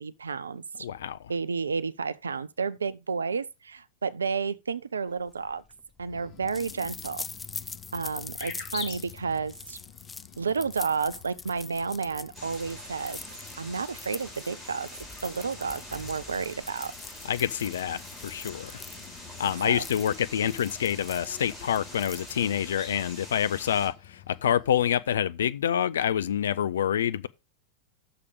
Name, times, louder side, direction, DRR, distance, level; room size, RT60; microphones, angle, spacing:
voice 1, 0.0-0.9 1.3-5.6 6.0-7.2 7.9-9.8 10.4-13.2 13.6-14.9 15.2-16.9 19.6-19.9, right 5 dB, 75° right, 0.5 m, -31 dB
voice 2, 0.8-1.3 17.2-18.7 19.4-27.3, left 9 dB, 65° left, 0.5 m, -27 dB
sound 1, 5.3-22.7, left 4 dB, 15° left, 0.5 m, -44 dB
sound 2, 6.1-25.0, left 9 dB, 45° left, 3.6 m, -49 dB
sound 3, 12.3-23.9, left 1 dB, 15° right, 4.3 m, -45 dB
6.7 x 5.0 x 6.8 m
figure-of-eight pair, 90°, 0 cm